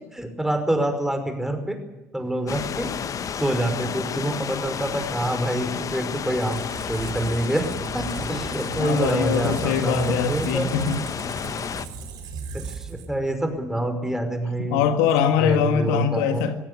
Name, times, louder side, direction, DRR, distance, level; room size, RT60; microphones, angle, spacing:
voice 1, 0.1-1.8 2.1-2.9 3.3-7.7 7.9-10.7 12.5-14.9 15.4-16.4, right 1 dB, 5° right, 6 dB, 5.3 m, -26 dB
sound 1, 2.5-11.9, left 7 dB, 40° left, 1.4 m, -31 dB
Squeak, 5.9-13.5, right 4 dB, 55° right, 4.0 m, -36 dB
voice 2, 8.8-11.0 14.7-16.5, left 7 dB, 70° left, 8 dB, 1.8 m, -22 dB
21.5 x 16.5 x 9.8 m, 1.0 s
figure-of-eight pair, 60°, 9 cm